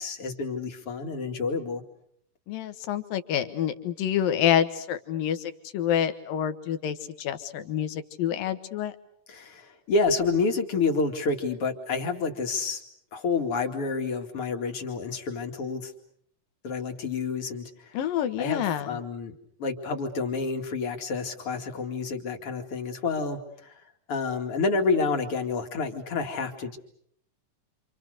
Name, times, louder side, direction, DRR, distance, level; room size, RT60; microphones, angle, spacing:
voice 1, 0.0-1.8 9.3-12.8 13.1-15.9 16.6-18.0 18.4-19.3 19.6-23.8 24.1-26.8, left 4 dB, 45° left, 4 dB, 3.1 m, -29 dB
voice 2, 2.5-8.9 17.9-19.0, left 9 dB, 75° left, 10 dB, 3.2 m, -27 dB
29.0 x 27.0 x 6.6 m, 0.69 s
omnidirectional pair, 4.0 m